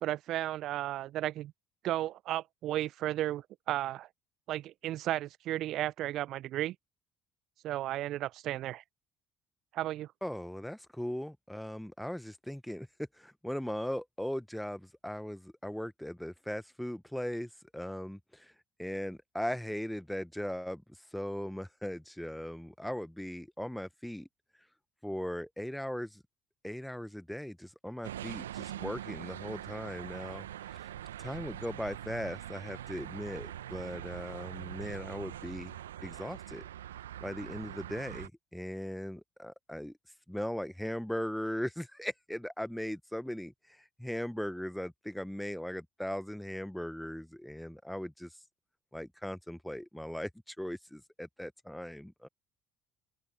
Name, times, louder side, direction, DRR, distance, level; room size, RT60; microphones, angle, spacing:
voice 1, 0.0-1.5 1.8-4.1 4.5-6.7 7.6-8.8 9.7-10.1, right 14 dB, 55° right, 1.0 m, -34 dB
voice 2, 10.2-12.9 13.1-18.5 18.8-20.8 21.1-24.3 25.0-26.2 26.6-30.8 31.2-35.7 36.0-36.6 37.2-39.9 40.3-48.4 48.9-52.3, equal, 5° left, 1.3 m, -38 dB
sound 1, 28.0-38.3, right 12 dB, 75° right, 1.3 m, -43 dB
open air
figure-of-eight pair, 55°, 0 cm